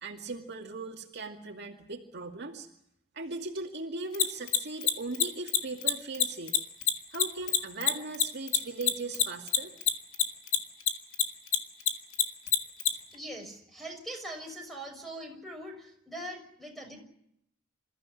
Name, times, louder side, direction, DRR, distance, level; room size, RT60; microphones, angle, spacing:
voice 1, 0.0-2.7 3.1-6.5 7.1-9.7, right 3 dB, 60° right, 1 dB, 2.3 m, -38 dB
Mechanisms, 4.1-10.9 11.1-12.9, left 11 dB, 70° left, 2.2 m, -24 dB
voice 2, 13.1-17.0, right 1 dB, ahead, 3 dB, 6.3 m, -42 dB
28.0 x 15.0 x 9.8 m, 0.75 s
head